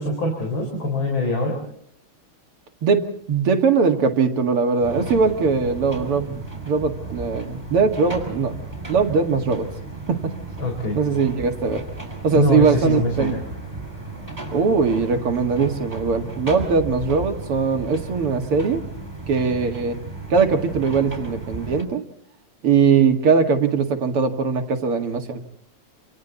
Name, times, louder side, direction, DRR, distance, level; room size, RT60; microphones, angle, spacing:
voice 1, 0.0-1.5 10.6-11.0 12.3-13.4, left 2 dB, 65° left, 2 dB, 5.0 m, -23 dB
voice 2, 2.8-8.5 8.9-9.7 10.1-10.3 10.9-11.8 12.2-13.4 14.5-18.8 19.3-20.0 20.3-22.0 22.6-25.4, right 5 dB, 80° right, 5 dB, 3.1 m, -20 dB
sound 1, 4.8-21.8, right 3 dB, 15° right, 5.8 m, -35 dB
28.0 x 28.0 x 4.1 m, 0.64 s
omnidirectional pair, 2.4 m